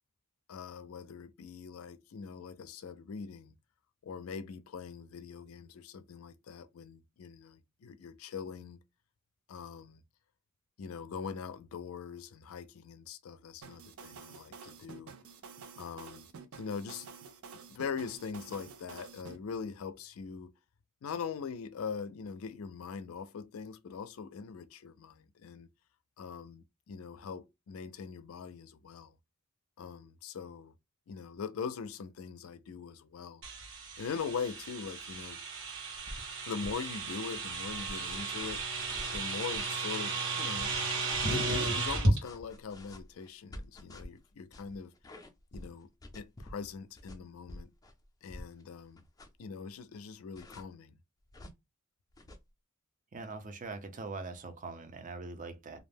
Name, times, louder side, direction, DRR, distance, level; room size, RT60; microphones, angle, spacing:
voice 1, 0.5-3.6 4.0-8.8 9.5-10.0 10.8-15.1 15.8-16.3 16.6-17.1 17.7-20.5 21.0-25.7 26.2-29.1 29.8-30.7 31.1-33.4 34.0-35.4 36.4-38.6 39.1-40.7 41.3-44.9 45.5-47.7 48.2-49.0 49.4-51.0, left 6 dB, 80° left, 0.4 m, -42 dB
sound 1, 13.6-19.4, right 5 dB, 90° right, 0.5 m, -50 dB
sound 2, 33.4-42.2, right 2 dB, 65° right, 1.1 m, -34 dB
sound 3, 35.9-36.3 36.6-36.8 37.5-39.6 40.6-41.2 42.2-48.6 49.0-49.4 50.3-50.6 51.3-51.5 52.1-52.4, left 1 dB, 20° left, 0.4 m, -48 dB
voice 2, 53.1-55.8, right 3 dB, 40° right, 0.5 m, -42 dB
2.5 x 2.0 x 3.3 m
head